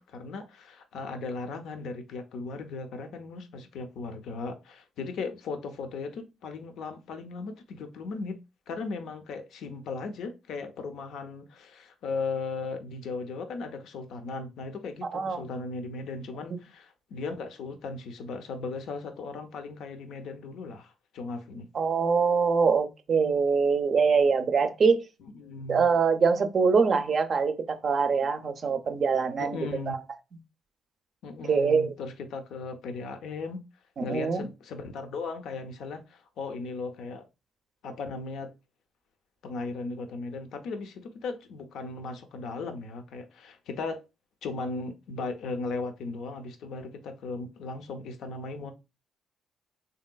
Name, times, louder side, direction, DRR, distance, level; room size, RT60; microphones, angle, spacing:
voice 1, 0.0-8.4 8.7-21.7 25.2-25.9 29.4-30.0 31.2-33.6 34.0-37.3 37.8-38.5 39.4-44.0 44.4-48.7, left 3 dB, 75° left, 0.5 m, -37 dB
voice 2, 15.0-15.4 16.5-16.6 21.7-25.0 25.7-29.6 29.9-30.0 31.5-31.9 34.0-34.4, right 5 dB, 50° right, 0.4 m, -24 dB
3.1 x 2.8 x 2.2 m
cardioid pair, 85°, 0 cm